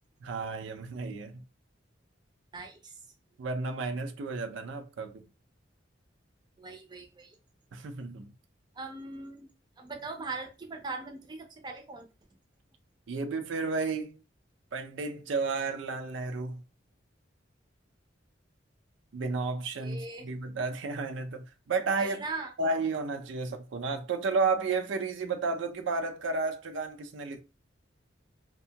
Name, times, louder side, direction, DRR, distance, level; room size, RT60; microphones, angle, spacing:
voice 1, 0.2-1.4 3.4-5.2 7.7-8.3 13.1-14.2 14.7-16.6 19.1-22.2 22.6-27.4, right 4 dB, 85° right, 0.4 m, -32 dB
voice 2, 2.5-2.9 6.6-7.4 8.8-9.5 9.8-12.1 19.8-20.3 22.0-22.5, right 3 dB, 25° right, 0.5 m, -40 dB
2.6 x 2.2 x 2.7 m
head